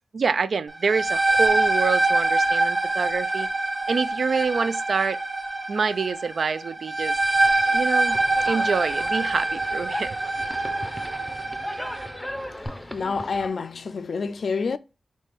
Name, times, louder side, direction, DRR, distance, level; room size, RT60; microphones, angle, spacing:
voice 1, 0.1-3.5 3.9-5.2 5.7-7.2 7.7-8.2 8.5-10.1, right 5 dB, 70° right, 0.3 m, -26 dB
sound 1, 0.7-12.2, right 2 dB, 25° right, 1.1 m, -25 dB
sound 2, 8.1-13.5, left 1 dB, 10° left, 0.5 m, -37 dB
voice 2, 12.9-14.8, left 4 dB, 65° left, 0.3 m, -28 dB
4.1 x 3.1 x 3.4 m
wide cardioid pair, 85°, 0 cm